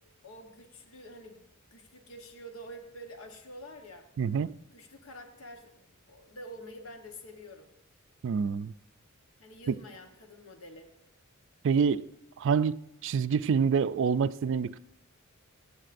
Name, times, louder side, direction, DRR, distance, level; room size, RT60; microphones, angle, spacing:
voice 1, 0.2-1.4 1.7-4.1 4.7-7.7 9.4-10.9, equal, 70° left, 1.1 m, -47 dB
voice 2, 4.2-4.5 8.2-8.7 11.6-12.1 12.4-14.8, right 6 dB, 60° right, 0.3 m, -27 dB
23.0 x 8.4 x 2.6 m
head